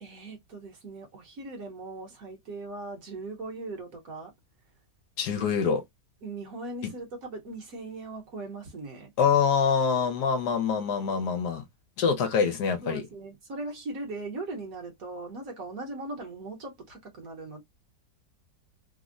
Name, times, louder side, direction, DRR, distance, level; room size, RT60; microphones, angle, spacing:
voice 1, 0.0-4.3 6.2-9.1 12.8-17.6, right 2 dB, 60° right, 1.3 m, -39 dB
voice 2, 5.2-5.8 9.2-11.6 12.0-13.0, left 6 dB, 75° left, 1.4 m, -25 dB
3.4 x 2.1 x 2.4 m
omnidirectional pair, 1.8 m